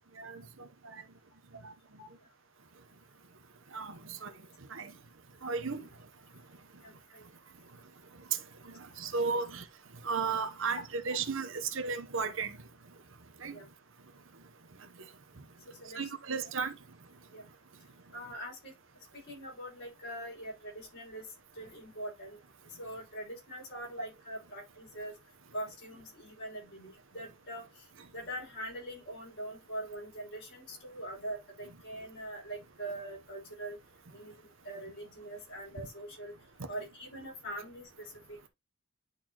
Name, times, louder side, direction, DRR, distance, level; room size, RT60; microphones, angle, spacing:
voice 1, 0.2-1.0 1.6-1.7 3.7-4.3 4.7-4.9 5.4-5.9 8.7-9.6 10.0-12.6 13.4-13.6 15.9-16.7, right 5 dB, 60° right, 0.9 m, -35 dB
voice 2, 6.8-7.2 9.4-9.5 13.5-13.7 15.8-16.1 16.4-16.5 17.3-17.4 18.1-18.7 19.1-22.4 22.8-25.1 25.5-27.8 28.1-33.8 34.1-36.3 36.7-38.5, right 1 dB, 50° left, 5.5 m, -43 dB
10.5 x 4.2 x 3.0 m
head